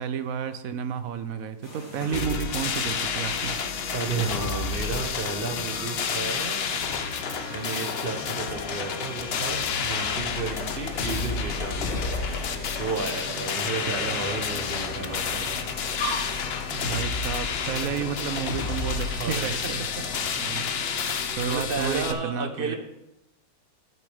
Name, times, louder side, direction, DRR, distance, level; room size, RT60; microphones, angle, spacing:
voice 1, 0.0-3.6 16.7-19.8 20.4-20.7 21.4-22.8, right 7 dB, 65° right, 11 dB, 0.9 m, -31 dB
sound 1, 1.6-21.3, left 1 dB, 55° left, 3.6 m, -39 dB
sound 2, 2.1-22.1, left 6 dB, 75° left, 0.5 m, -30 dB
voice 2, 2.1-2.4 3.9-6.7 7.5-12.0 12.8-15.5 17.8-18.1 19.2-19.5 19.9-20.0 20.4-20.7 21.5-22.8, right 4 dB, 35° right, 4 dB, 1.0 m, -33 dB
Trumpet, 4.3-9.4, right 1 dB, 10° right, 2.7 m, -50 dB
12.0 x 9.2 x 3.4 m, 0.88 s
omnidirectional pair, 2.0 m